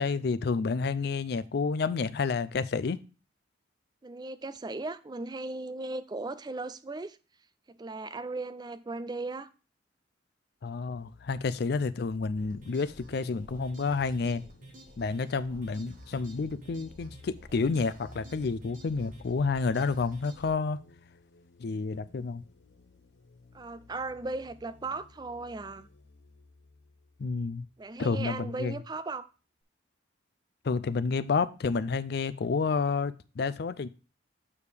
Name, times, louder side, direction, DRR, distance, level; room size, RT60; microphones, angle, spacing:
voice 1, 0.0-3.0 10.6-14.5 15.0-20.8 21.6-22.4 27.2-27.7 28.0-28.7 30.6-33.9, left 4 dB, 55° left, 0.4 m, -30 dB
voice 2, 4.0-7.2 7.7-9.5 23.5-25.9 27.8-29.3, right 3 dB, 20° right, 0.4 m, -37 dB
sound 1, 10.8-28.2, left 3 dB, 75° left, 0.8 m, -57 dB
sound 2, 12.3-20.5, right 1 dB, 45° right, 1.5 m, -51 dB
8.4 x 4.7 x 3.4 m
head